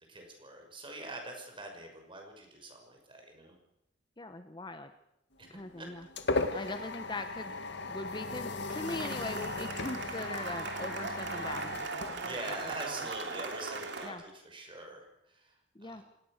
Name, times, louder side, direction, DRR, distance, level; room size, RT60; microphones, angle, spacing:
voice 1, 0.1-3.6 5.4-5.5 5.8-5.9 6.5-6.8 12.2-16.0, right 2 dB, 25° right, 3 dB, 6.0 m, -44 dB
voice 2, 4.2-4.9 5.5-6.1 6.5-7.6 7.9-12.6 14.0-14.2 15.7-16.0, left 2 dB, 25° left, 9 dB, 1.0 m, -41 dB
sound 1, 5.4-12.8, left 3 dB, 65° left, 2.1 m, -37 dB
Cheering / Applause, 8.7-14.1, right 3 dB, 65° right, 2.8 m, -39 dB
26.5 x 19.0 x 6.5 m, 0.84 s
head